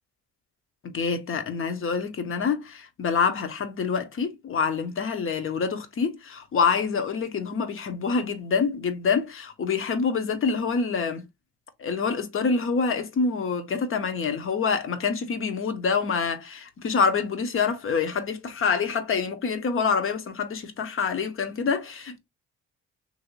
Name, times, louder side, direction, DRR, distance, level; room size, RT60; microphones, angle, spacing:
voice 1, 0.8-11.2 11.8-22.2, left 5 dB, 45° left, 0.8 m, -26 dB
3.1 x 2.7 x 3.0 m
cardioid pair, 90°, 30 cm